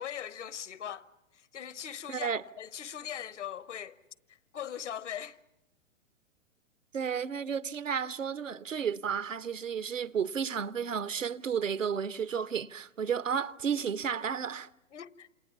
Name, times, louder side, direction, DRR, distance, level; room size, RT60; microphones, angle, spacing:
voice 1, 0.0-4.0 4.3-5.4 14.9-15.3, left 9 dB, 65° left, 1.1 m, -40 dB
voice 2, 2.1-2.4 6.9-14.7, right 7 dB, 80° right, 0.9 m, -32 dB
28.5 x 27.5 x 7.2 m
figure-of-eight pair, 115°, 38 cm